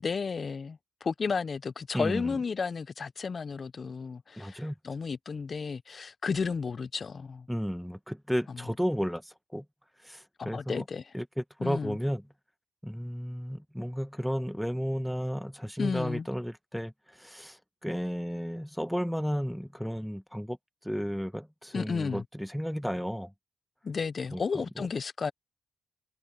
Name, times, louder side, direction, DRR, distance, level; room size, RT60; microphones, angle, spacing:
voice 1, 0.0-7.5 10.4-11.0 11.6-12.0 15.8-16.3 21.7-22.2 23.8-25.3, left 5 dB, 50° left, 0.7 m, -33 dB
voice 2, 1.9-2.4 4.4-4.7 7.5-9.6 10.0-10.8 11.1-12.2 12.8-20.6 20.8-23.3 24.3-24.9, equal, ahead, 1.2 m, -33 dB
supercardioid pair, 50°, 0 cm